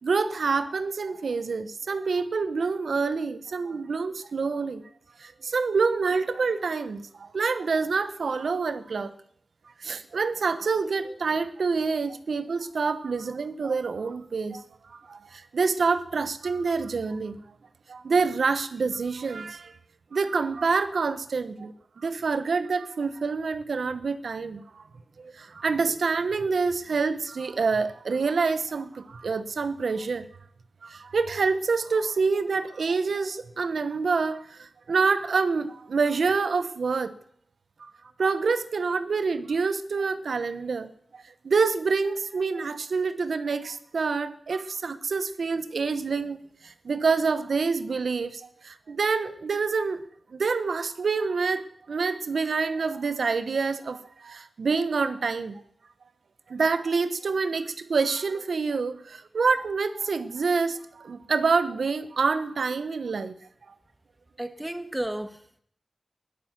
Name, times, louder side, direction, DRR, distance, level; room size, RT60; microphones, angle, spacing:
voice 1, 0.0-4.8 5.2-9.1 9.8-17.4 17.9-19.7 20.1-24.8 25.2-30.3 30.8-37.2 37.8-37.9 38.2-46.4 46.6-50.0 50.3-55.6 56.5-63.3 63.7-63.8, right 4 dB, 90° right, 1.1 m, -27 dB
voice 2, 64.4-65.6, right 1 dB, 10° right, 1.4 m, -33 dB
16.0 x 11.5 x 7.5 m
wide cardioid pair, 110°, 0 cm